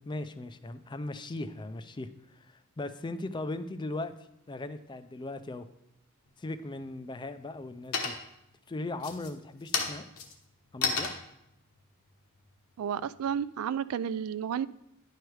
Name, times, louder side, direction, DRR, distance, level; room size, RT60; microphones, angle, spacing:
voice 1, 0.0-2.1 2.4-4.1 4.5-5.7 6.4-8.1 8.7-10.1 10.7-11.1, left 2 dB, 20° left, 11 dB, 0.4 m, -38 dB
sound 1, 6.3-6.8 7.3-7.7 7.9-8.5 8.9-13.4, left 5 dB, 70° left, 1.1 m, -34 dB
voice 2, 12.8-14.7, right 8 dB, 75° right, 17 dB, 0.3 m, -32 dB
10.0 x 4.8 x 4.6 m, 0.82 s
head